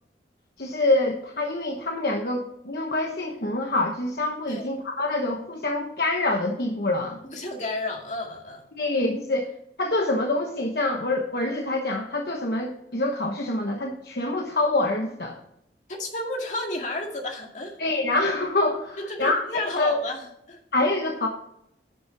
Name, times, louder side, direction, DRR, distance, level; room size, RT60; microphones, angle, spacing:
voice 1, 0.6-7.2 8.7-9.5 9.8-15.4 17.8-20.0 20.7-21.3, left 2 dB, 60° left, 1 dB, 1.1 m, -26 dB
voice 2, 7.3-8.6 15.9-17.8 19.0-20.6, left 2 dB, 45° left, 1 dB, 2.2 m, -32 dB
10.5 x 6.3 x 6.0 m, 0.79 s
head